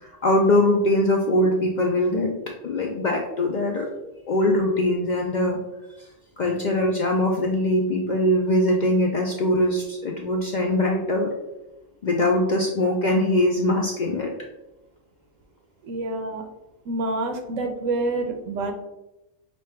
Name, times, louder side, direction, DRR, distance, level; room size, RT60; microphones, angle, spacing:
voice 1, 0.0-2.3 2.6-3.9 4.3-5.6 6.4-11.3 12.0-14.3, left 1 dB, 80° left, 1 dB, 0.4 m, -22 dB
voice 2, 15.8-16.5 16.9-18.7, right 2 dB, 80° right, 5 dB, 1.0 m, -27 dB
5.1 x 2.2 x 3.3 m, 0.95 s
omnidirectional pair, 1.3 m